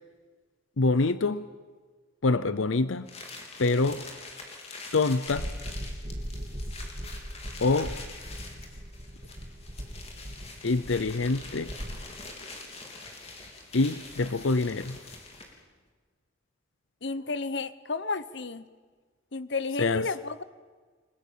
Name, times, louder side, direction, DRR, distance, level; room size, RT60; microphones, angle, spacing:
voice 1, 0.8-1.5 2.2-3.1 3.6-4.0 4.9-5.5 7.6-7.9 10.6-11.7 13.7-15.0 19.8-20.1, left 3 dB, 80° left, 14 dB, 0.7 m, -25 dB
sound 1, 3.1-15.6, left 3 dB, 30° left, 3.4 m, -45 dB
sound 2, 5.3-12.0, equal, 40° right, 2.5 m, -39 dB
voice 2, 17.0-18.6 19.3-20.4, left 3 dB, 60° left, 14 dB, 1.0 m, -32 dB
30.0 x 20.0 x 7.5 m, 1.5 s
head